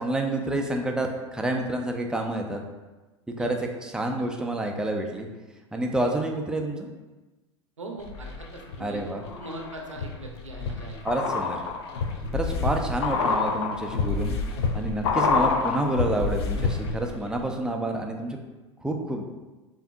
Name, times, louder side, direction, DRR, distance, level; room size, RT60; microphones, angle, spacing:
voice 1, 0.0-2.6 3.4-5.3 5.7-6.9 8.8-9.2 11.0-11.6 12.3-14.3 14.7-18.4 18.8-19.2, right 1 dB, 5° right, 2 dB, 0.5 m, -28 dB
voice 2, 7.8-9.0 9.4-11.0, right 2 dB, 85° right, 1 dB, 0.7 m, -40 dB
sound 1, 8.0-8.8 9.2-17.1 17.4-17.5, left 4 dB, 60° left, 0.5 m, -27 dB
6.7 x 2.6 x 2.3 m, 1.2 s
figure-of-eight pair, 85°, 16 cm